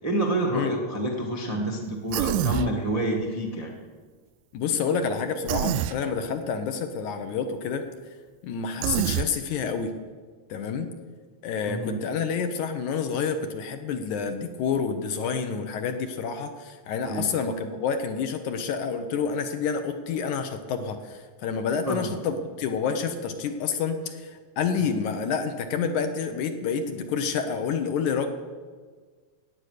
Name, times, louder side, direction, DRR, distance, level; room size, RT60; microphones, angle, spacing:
voice 1, 0.0-3.7 11.7-12.0 17.1-17.3 21.9-22.1, right 1 dB, 60° right, -1 dB, 0.4 m, -28 dB
Human voice, 2.1-2.7 5.5-6.0 8.8-9.3, right 13 dB, 90° right, 2.3 m, -25 dB
voice 2, 4.5-7.9 8.4-10.0 10.5-10.9 11.4-28.3, left 6 dB, 70° left, 7 dB, 2.1 m, -28 dB
16.5 x 9.4 x 6.6 m, 1.5 s
omnidirectional pair, 4.1 m